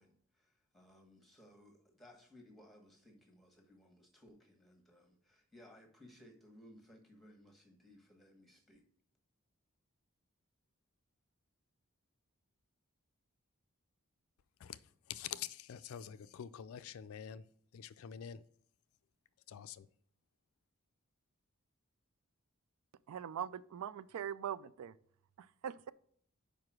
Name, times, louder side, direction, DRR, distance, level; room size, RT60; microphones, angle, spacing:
voice 1, 0.0-8.9, left 1 dB, ahead, 1.3 m, -61 dB
voice 2, 15.1-17.5 17.7-18.4 19.5-19.9, left 9 dB, 70° left, 0.3 m, -46 dB
voice 3, 23.1-24.9 25.4-25.9, right 9 dB, 80° right, 0.3 m, -42 dB
5.1 x 4.8 x 5.9 m
head